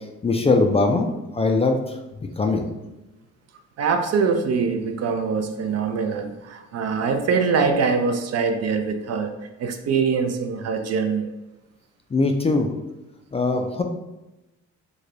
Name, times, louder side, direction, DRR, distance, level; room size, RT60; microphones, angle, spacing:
voice 1, 0.2-1.8 2.4-2.6 12.1-12.7 13.3-13.8, left 3 dB, 20° left, 3 dB, 0.3 m, -21 dB
voice 2, 3.8-9.3 9.6-11.3, right 5 dB, 55° right, 7 dB, 0.5 m, -23 dB
3.2 x 2.2 x 3.7 m, 0.98 s
cardioid pair, 90°, 30 cm